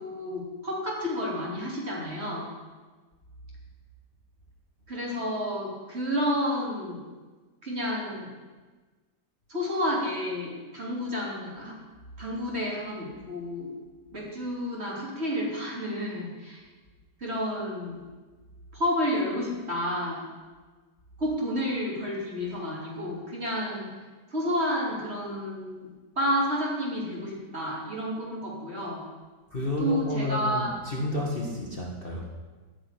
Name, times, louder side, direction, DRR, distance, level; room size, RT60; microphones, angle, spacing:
voice 1, 0.0-2.5 4.9-7.0 7.6-8.3 9.5-11.8 12.2-13.7 14.1-16.6 17.2-18.0 18.7-20.2 21.2-23.9 24.3-25.9 26.2-29.0 29.8-30.8, equal, 35° right, -4 dB, 3.5 m, -30 dB
voice 2, 29.5-32.2, left 2 dB, 35° left, -1 dB, 1.6 m, -31 dB
14.0 x 6.2 x 9.9 m, 1.3 s
omnidirectional pair, 1.9 m